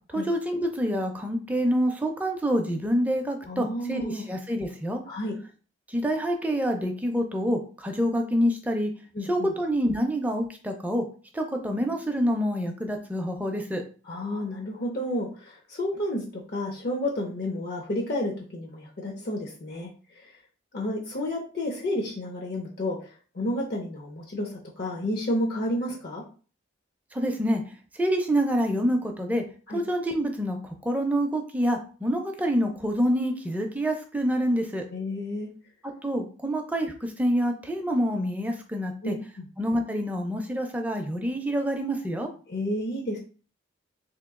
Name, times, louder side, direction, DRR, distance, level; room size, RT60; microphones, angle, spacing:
voice 1, 0.1-5.0 5.9-8.9 9.3-11.0 11.3-13.8 27.1-27.6 28.0-29.4 29.7-34.8 36.0-39.1 39.6-42.3, equal, 10° right, 3 dB, 0.4 m, -27 dB
voice 2, 3.5-4.2 5.1-5.4 9.1-9.5 14.1-20.4 20.7-26.2 29.7-29.8 34.9-35.5 39.0-39.5 42.5-43.2, left 1 dB, 55° left, 0 dB, 0.6 m, -31 dB
2.9 x 2.7 x 3.6 m, 0.39 s
head